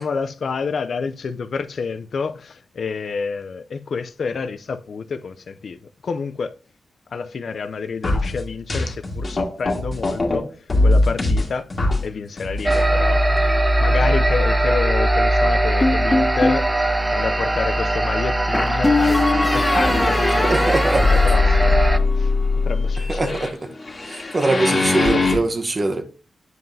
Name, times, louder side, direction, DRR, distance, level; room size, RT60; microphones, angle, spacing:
voice 1, 0.0-6.6 7.1-11.7 12.0-13.3 13.8-22.4 22.6-23.5 24.0-24.4, left 5 dB, 65° left, 0.4 m, -29 dB
sound 1, 8.0-10.4 10.7-12.0 12.4-12.8 13.4-13.5 14.1-14.2 14.8-14.9 19.2-25.4, left 3 dB, 40° left, 1.8 m, -21 dB
sound 2, 12.6-22.0, right 1 dB, 15° right, 0.5 m, -20 dB
sound 3, 15.8-16.6 18.5-22.1, left 2 dB, 20° left, 1.7 m, -22 dB
voice 2, 20.4-21.2 23.1-23.5 24.1-26.0, right 2 dB, 35° right, 0.9 m, -22 dB
9.1 x 5.4 x 2.7 m
cardioid pair, 90°, 0 cm